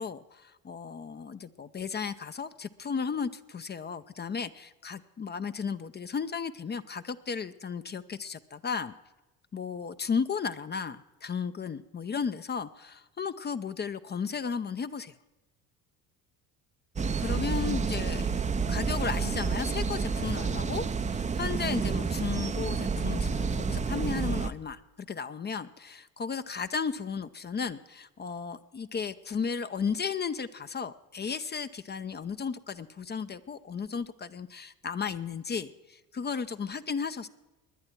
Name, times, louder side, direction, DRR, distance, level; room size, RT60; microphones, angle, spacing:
voice 1, 0.0-8.9 9.5-15.1 17.2-18.4 18.7-37.3, left 6 dB, 25° left, 12 dB, 0.6 m, -34 dB
sound 1, 17.0-24.5, right 5 dB, 15° right, 0.6 m, -29 dB
20.5 x 10.5 x 4.5 m, 1.1 s
hypercardioid pair, 65°, 43 cm